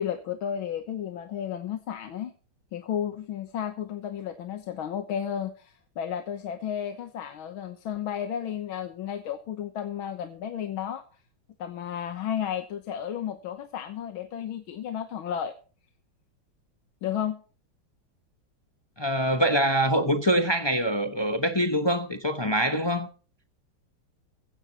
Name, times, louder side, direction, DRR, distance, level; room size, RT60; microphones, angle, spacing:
voice 1, 0.0-2.3 2.7-11.0 11.6-15.5 17.0-17.4, left 9 dB, 75° left, 1.9 m, -33 dB
voice 2, 19.0-23.1, equal, 30° left, 0.5 m, -24 dB
15.5 x 15.5 x 3.0 m
omnidirectional pair, 2.3 m